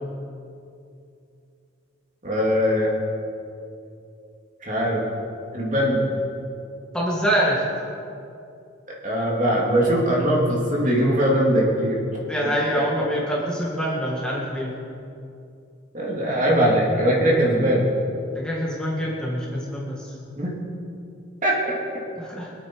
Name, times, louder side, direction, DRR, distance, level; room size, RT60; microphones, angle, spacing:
voice 1, 2.2-2.9 4.7-5.0 5.5-6.0 9.0-12.0 15.9-17.9 20.4-20.5 21.4-21.7, equal, 40° right, -4 dB, 3.1 m, -20 dB
voice 2, 6.9-7.6 12.2-14.8 18.3-20.2 22.1-22.5, equal, 5° left, -5 dB, 2.1 m, -25 dB
24.5 x 8.7 x 4.9 m, 2.6 s
head